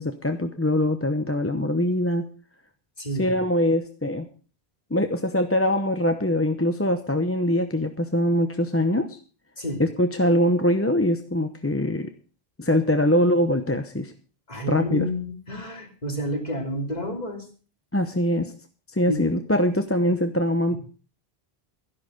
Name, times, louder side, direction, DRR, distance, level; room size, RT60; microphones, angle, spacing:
voice 1, 0.0-2.3 3.2-4.3 4.9-9.2 9.8-12.1 12.6-14.1 14.7-15.1 17.9-18.5 18.9-20.8, left 1 dB, 15° left, 7 dB, 0.8 m, -23 dB
voice 2, 3.0-3.3 9.6-9.8 14.5-17.5 19.1-19.2, equal, 40° left, 3 dB, 3.1 m, -29 dB
12.5 x 11.5 x 5.2 m, 0.37 s
omnidirectional pair, 1.1 m